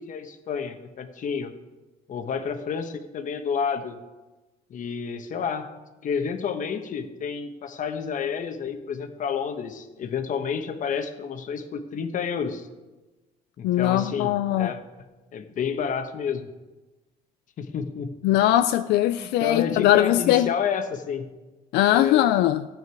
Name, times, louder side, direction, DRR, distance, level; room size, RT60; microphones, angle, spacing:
voice 1, 0.0-1.5 2.1-4.0 4.7-5.7 6.0-12.7 13.6-14.8 15.3-16.4 17.6-18.4 19.2-21.3 21.9-22.2, left 6 dB, 50° left, 1.2 m, -30 dB
voice 2, 13.6-14.7 18.2-20.5 21.7-22.7, left 13 dB, 85° left, 0.4 m, -21 dB
14.0 x 8.9 x 4.7 m
cardioid pair, 110°, 17 cm